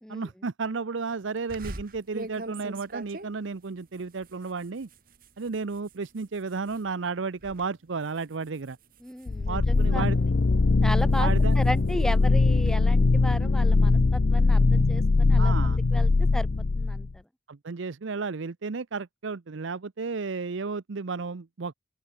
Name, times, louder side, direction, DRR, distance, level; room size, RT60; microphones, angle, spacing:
voice 1, 0.1-4.9 5.4-8.8 9.5-10.2 11.2-11.6 15.4-15.8 17.5-21.7, right 4 dB, 75° right, 0.6 m, -33 dB
sound 1, 1.5-6.9 7.2-7.7 8.0-10.0 10.6-12.8, right 2 dB, 45° right, 2.4 m, -44 dB
voice 2, 9.0-10.1 10.8-11.3 11.6-16.5 16.8-17.1, equal, 5° left, 0.5 m, -35 dB
sound 2, 9.3-17.1, left 3 dB, 55° left, 0.6 m, -21 dB
open air
head